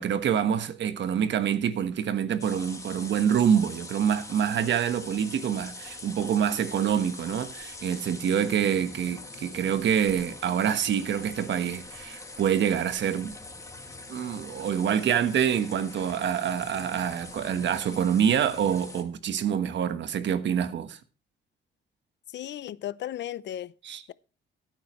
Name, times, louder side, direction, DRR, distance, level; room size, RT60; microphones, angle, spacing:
voice 1, 0.0-13.4 14.1-21.0 23.8-24.0, right 8 dB, 65° right, 1.3 m, -26 dB
sound 1, 2.4-19.0, left 2 dB, 15° left, 2.3 m, -43 dB
voice 2, 22.3-23.7, left 12 dB, 65° left, 0.6 m, -35 dB
16.0 x 9.1 x 3.1 m
cardioid pair, 90°, 20 cm